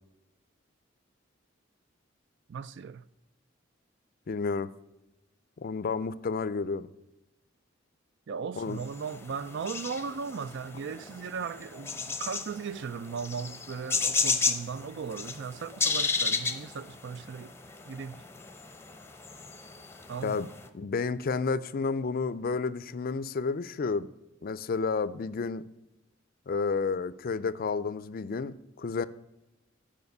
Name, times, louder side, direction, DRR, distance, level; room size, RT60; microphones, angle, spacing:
voice 1, 2.5-3.0 8.3-17.5 17.9-18.2 20.1-20.5, right 6 dB, 65° right, 0.4 m, -37 dB
voice 2, 4.3-4.7 5.6-6.9 8.6-8.8 20.2-20.5 20.7-24.1 24.4-25.7 26.5-29.1, left 4 dB, 50° left, 0.4 m, -31 dB
sound 1, 8.8-20.7, left 4 dB, 15° left, 0.7 m, -34 dB
9.5 x 5.0 x 6.6 m
head